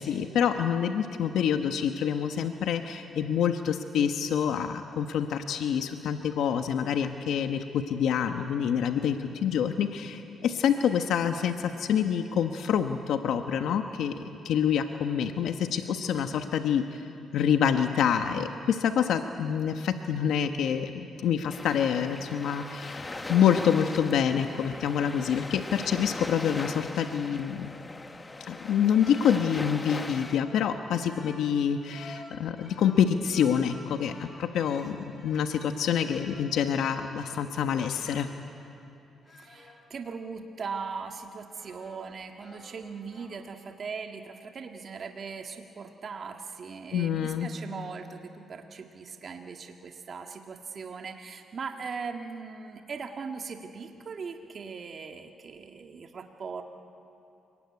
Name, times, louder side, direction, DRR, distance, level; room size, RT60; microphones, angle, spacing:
voice 1, 0.0-16.8 17.3-27.7 28.5-35.0 35.2-38.3 46.9-47.5, left 8 dB, 80° left, 7 dB, 1.1 m, -27 dB
sound 1, 21.5-30.4, left 2 dB, 25° left, 1.3 m, -39 dB
sound 2, 27.6-38.5 39.3-39.8 40.9-42.1 42.4-43.4, left 2 dB, 45° left, 5.1 m, -52 dB
voice 2, 39.3-56.6, right 5 dB, 50° right, 4 dB, 1.7 m, -39 dB
27.5 x 19.5 x 9.7 m, 2.9 s
cardioid pair, 80°, 0 cm